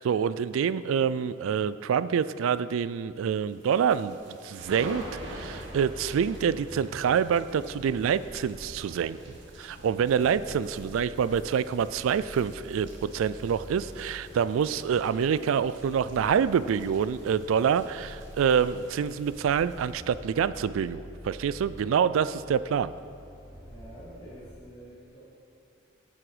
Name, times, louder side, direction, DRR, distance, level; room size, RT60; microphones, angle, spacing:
voice 1, 0.0-4.2 4.4-9.2 9.6-22.9, right 7 dB, 85° right, 15 dB, 0.3 m, -26 dB
sound 1, 3.5-20.5, right 1 dB, 70° right, 1.4 m, -47 dB
sound 2, 4.8-24.5, equal, 20° right, 1.5 m, -47 dB
voice 2, 23.6-25.2, equal, 30° left, -13 dB, 2.4 m, -48 dB
9.6 x 7.7 x 4.9 m, 2.6 s
head